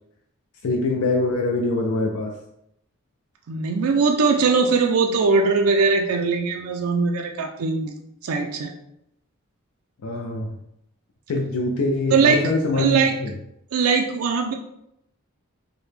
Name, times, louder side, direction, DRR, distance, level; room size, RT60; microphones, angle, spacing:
voice 1, 0.6-2.3 10.0-10.6 11.3-13.3, left 2 dB, 80° left, 1 dB, 0.5 m, -24 dB
voice 2, 3.5-7.9 8.2-8.7 12.1-13.2 13.7-14.5, right 4 dB, 80° right, 3 dB, 0.4 m, -20 dB
4.7 x 2.1 x 3.3 m, 0.78 s
head